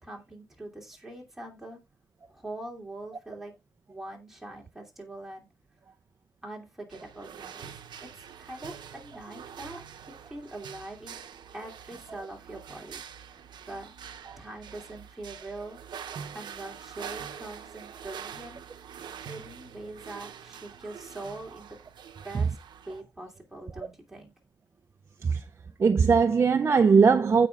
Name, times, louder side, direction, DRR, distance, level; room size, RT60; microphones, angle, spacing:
voice 1, 0.0-1.8 2.3-3.5 3.9-5.5 6.4-11.2 11.5-13.0 13.7-13.9 14.4-15.8 16.3-18.6 19.2-21.8 22.2-22.6 22.8-24.3, right 2 dB, 5° right, 2.9 m, -43 dB
sound 1, 6.9-23.0, right 7 dB, 85° right, 0.9 m, -45 dB
voice 2, 25.8-27.5, right 5 dB, 35° right, 0.5 m, -20 dB
15.5 x 5.3 x 2.4 m
wide cardioid pair, 155°, 8 cm